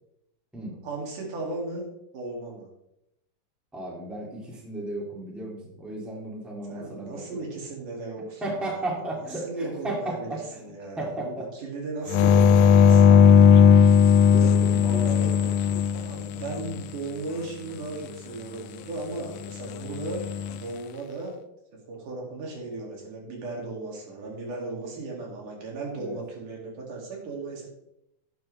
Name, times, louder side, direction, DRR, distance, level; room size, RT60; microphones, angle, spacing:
voice 1, 0.8-1.9 2.1-2.7 6.7-8.9 9.4-13.4 15.7-20.2 20.5-21.4 21.9-27.7, right 3 dB, 80° right, -1 dB, 3.9 m, -36 dB
voice 2, 3.7-7.4 8.4-10.6 11.0-11.5 12.7-13.2 14.3-15.6 25.9-26.2, right 1 dB, ahead, -2 dB, 1.7 m, -35 dB
sound 1, 12.1-16.7 20.0-20.5, left 7 dB, 80° left, 1.6 m, -17 dB
11.0 x 9.1 x 3.3 m, 0.83 s
omnidirectional pair, 3.6 m